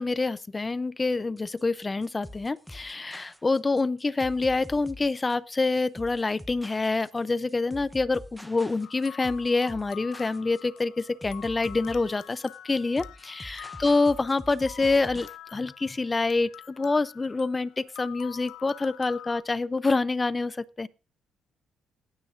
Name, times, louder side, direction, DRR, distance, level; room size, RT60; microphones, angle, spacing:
voice 1, 0.0-20.9, left 3 dB, 20° left, 0.5 m, -27 dB
sound 1, 1.4-15.4, left 1 dB, ahead, 0.8 m, -45 dB
sound 2, 8.8-19.4, left 13 dB, 90° left, 0.5 m, -47 dB
17.0 x 9.6 x 2.5 m
cardioid pair, 100°, 0 cm